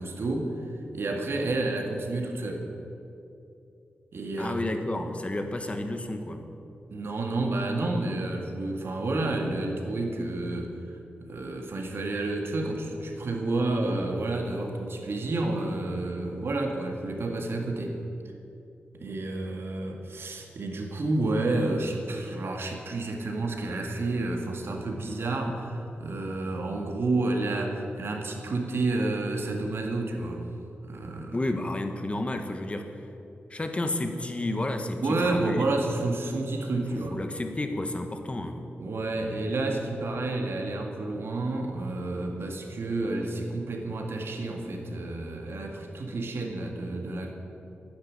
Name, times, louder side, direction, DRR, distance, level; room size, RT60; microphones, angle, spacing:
voice 1, 0.0-2.7 4.1-4.6 6.9-10.8 11.2-18.0 18.9-30.5 30.8-31.4 35.0-37.2 38.8-47.3, right 2 dB, 65° right, 2 dB, 1.9 m, -30 dB
voice 2, 4.4-6.5 31.3-33.1 33.5-35.7 37.1-38.6, left 1 dB, 30° left, 6 dB, 1.3 m, -31 dB
11.0 x 9.8 x 8.6 m, 2.8 s
cardioid pair, 80°, 4 cm